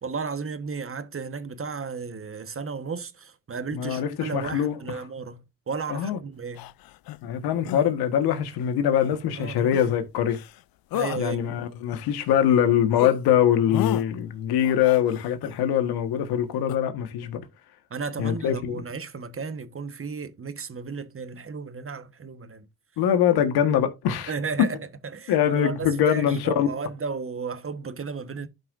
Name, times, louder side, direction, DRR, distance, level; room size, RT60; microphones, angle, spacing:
voice 1, 0.0-6.7 9.3-9.7 10.9-11.4 17.2-17.3 17.9-22.7 24.3-24.8 25.0-28.5, right 5 dB, 35° right, 1.3 m, -34 dB
voice 2, 3.7-4.8 5.9-6.2 7.2-10.4 11.2-17.4 18.2-18.8 23.0-24.3 25.3-26.7, left 9 dB, 90° left, 1.5 m, -23 dB
sound 1, 6.6-7.2 7.6-7.9 9.0-9.2 9.7-10.0 10.3-10.6 10.9-11.2 11.7-12.6 12.9-13.2 13.7-14.0 14.6-15.6 16.7-16.8, left 15 dB, 70° left, 0.5 m, -33 dB
12.0 x 5.6 x 2.6 m
supercardioid pair, 65°, 37 cm